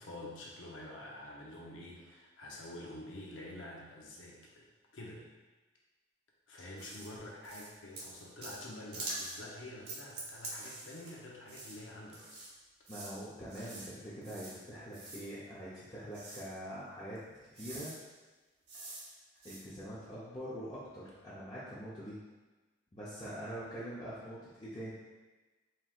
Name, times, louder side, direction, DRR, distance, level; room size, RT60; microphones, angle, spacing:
voice 1, 0.0-4.7 4.9-5.2 6.5-12.4 12.8-12.9, left 1 dB, 90° left, -3 dB, 0.9 m, -48 dB
sound 1, 6.8-7.1 7.4-7.7 7.9-8.6 8.9-9.4 9.9-11.1 11.5-11.8 12.1-12.5 12.9-13.1 13.5-13.9 14.2-14.5 14.9-15.2 16.1-16.4 17.1-17.2 17.6-18.0 18.7-19.1 19.4-19.6, right 2 dB, 55° right, 1.0 m, -45 dB
voice 2, 12.9-17.2 17.5-17.9 19.4-22.2 22.9-24.9, equal, 25° left, -10 dB, 0.7 m, -44 dB
4.4 x 3.5 x 2.4 m, 1.2 s
head